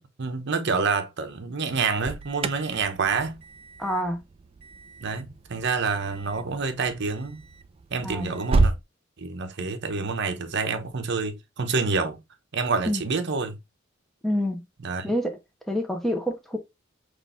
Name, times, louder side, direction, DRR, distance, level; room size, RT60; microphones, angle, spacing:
voice 1, 0.2-3.4 5.0-7.5 7.9-8.7 9.2-12.2 12.5-13.6 14.8-15.1, right 4 dB, 60° right, 0.8 m, -27 dB
Alarm, 1.7-8.8, right 3 dB, 30° right, 0.3 m, -31 dB
voice 2, 3.8-4.2 8.0-8.3 12.9-13.0 14.2-14.6 15.0-15.4 15.7-16.6, equal, ahead, 0.8 m, -27 dB
5.9 x 3.1 x 2.5 m
head